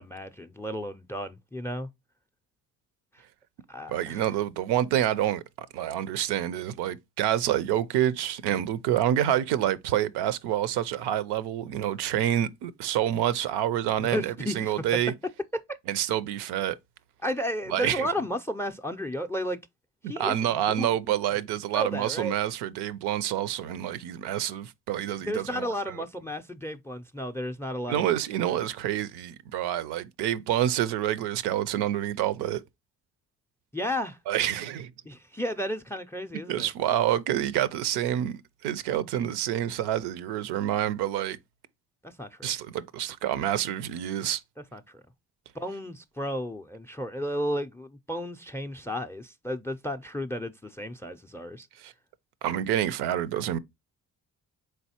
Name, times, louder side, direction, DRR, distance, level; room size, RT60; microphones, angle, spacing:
voice 1, 0.0-1.9 3.7-4.2 14.1-14.7 15.5-15.8 17.2-19.6 20.0-20.9 21.7-22.3 25.2-28.1 28.5-28.6 33.7-34.2 35.1-36.7 42.0-42.5 44.7-44.8 45.5-51.7, equal, 5° left, 0.3 m, -33 dB
voice 2, 3.9-15.1 15.9-16.8 17.7-18.1 20.2-26.0 27.9-32.6 34.3-34.9 36.5-41.4 42.4-44.4 51.8-51.9 52.4-53.6, right 11 dB, 75° right, 0.5 m, -28 dB
4.0 x 3.2 x 2.7 m
supercardioid pair, 50°, 40 cm